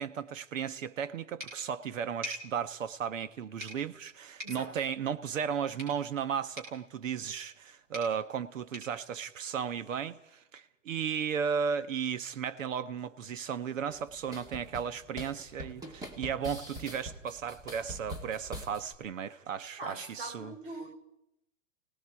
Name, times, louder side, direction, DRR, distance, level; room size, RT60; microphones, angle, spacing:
voice 1, 0.0-20.5, right 7 dB, 80° right, 1.3 m, -35 dB
sound 1, 1.4-10.1, equal, 25° right, 6.7 m, -49 dB
voice 2, 4.4-4.7 19.8-21.0, right 2 dB, 45° right, 4.7 m, -42 dB
sound 2, 13.9-18.9, equal, 10° right, 1.4 m, -44 dB
29.5 x 18.5 x 4.8 m
hypercardioid pair, 160°, 38 cm